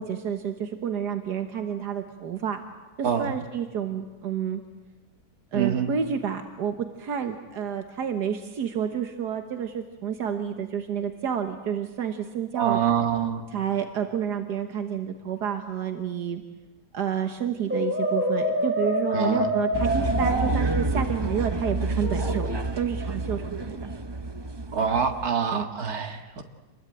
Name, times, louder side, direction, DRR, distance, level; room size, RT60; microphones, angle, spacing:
voice 1, 0.0-2.6 3.0-4.6 5.5-12.8 13.5-16.4 16.9-22.5 22.8-23.8 25.5-25.7, right 8 dB, 80° right, 7 dB, 1.9 m, -30 dB
voice 2, 3.0-3.4 5.5-5.9 12.6-13.5 19.1-19.5 24.7-26.4, right 7 dB, 65° right, 6 dB, 2.3 m, -26 dB
Brass instrument, 17.7-20.5 22.0-22.6, equal, 5° right, 8.1 m, -26 dB
sound 1, 19.7-25.3, right 2 dB, 25° right, 0.6 m, -29 dB
27.0 x 21.5 x 9.1 m, 1.2 s
omnidirectional pair, 1.7 m